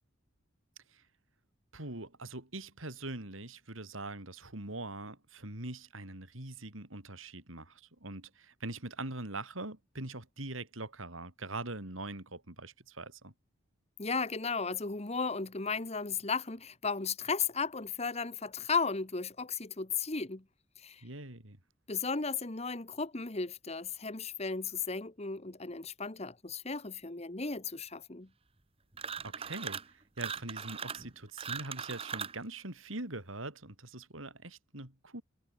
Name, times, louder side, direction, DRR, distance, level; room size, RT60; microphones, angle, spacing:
voice 1, 1.7-13.3 21.0-21.6 29.2-35.2, right 2 dB, 80° right, 4.4 m, -43 dB
voice 2, 14.0-20.4 20.8-21.0 21.9-28.3, left 5 dB, 30° left, 1.2 m, -35 dB
sound 1, 28.9-29.9 30.2-32.4, right 6 dB, 30° right, 1.2 m, -39 dB
head